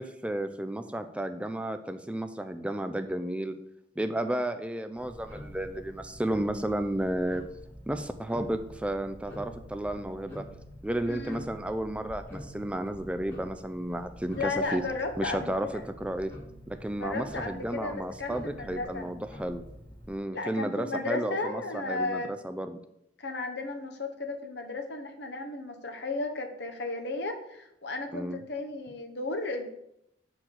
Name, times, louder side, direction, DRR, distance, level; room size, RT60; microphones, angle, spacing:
voice 1, 0.0-3.5 4.0-7.4 7.9-10.5 10.8-14.8 15.2-16.3 16.7-19.6 20.1-22.8 28.1-28.4, right 1 dB, 5° right, 8 dB, 0.4 m, -32 dB
Tick-tock, 4.9-20.2, equal, 10° left, 2.6 m, -47 dB
voice 2, 11.1-11.4 14.3-15.8 17.0-19.1 20.3-22.3 23.2-29.7, left 3 dB, 60° left, 4 dB, 1.0 m, -34 dB
5.7 x 4.5 x 6.4 m, 0.80 s
head